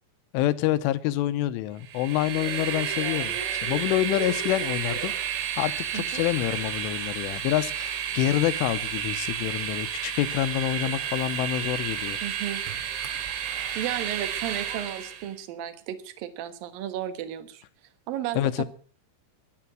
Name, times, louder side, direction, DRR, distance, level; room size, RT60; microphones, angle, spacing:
voice 1, 0.3-12.2 18.4-18.6, left 14 dB, 80° left, 13 dB, 3.2 m, -27 dB
Train, 1.8-15.3, right 9 dB, 85° right, 5.1 m, -31 dB
voice 2, 12.2-12.6 13.8-17.6 18.1-18.6, right 11 dB, 65° right, 11 dB, 2.4 m, -34 dB
13.0 x 12.0 x 7.5 m, 0.41 s
omnidirectional pair, 5.9 m